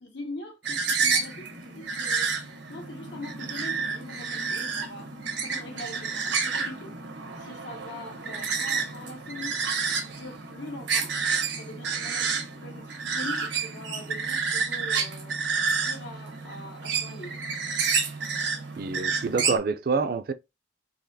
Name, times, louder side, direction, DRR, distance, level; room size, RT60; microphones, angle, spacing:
voice 1, 0.0-2.3 2.7-5.1 5.4-7.0 7.3-9.6 10.0-11.1 11.6-15.3 15.7-17.4, left 1 dB, 90° left, 1.5 m, -42 dB
sound 1, 0.6-19.6, right 5 dB, 85° right, 1.0 m, -30 dB
voice 2, 18.8-20.3, right 4 dB, 55° right, 0.4 m, -27 dB
4.0 x 2.8 x 2.7 m
head